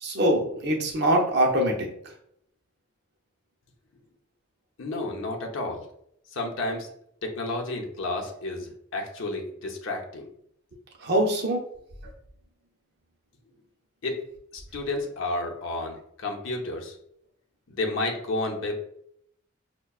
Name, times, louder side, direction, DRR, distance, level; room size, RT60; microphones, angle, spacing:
voice 1, 0.0-1.9 11.0-11.6, right 1 dB, 55° right, 1 dB, 0.6 m, -23 dB
voice 2, 4.8-5.9 6.3-6.9 7.2-10.3 14.0-14.2 14.5-17.0 17.7-18.8, left 2 dB, 75° left, 2 dB, 0.7 m, -31 dB
5.5 x 2.2 x 2.3 m, 0.73 s
head